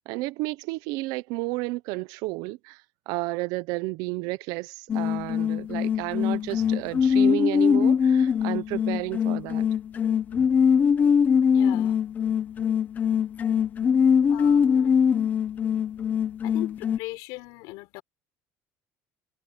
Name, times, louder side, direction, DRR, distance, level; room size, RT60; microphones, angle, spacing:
voice 1, 0.1-9.6, right 21 dB, 80° right, 0.8 m, -32 dB
sound 1, 4.9-17.0, left 7 dB, 25° left, 1.0 m, -22 dB
voice 2, 11.5-12.0 14.3-15.0 16.4-18.0, left 23 dB, 85° left, 5.5 m, -39 dB
cardioid pair, 170°, 6 cm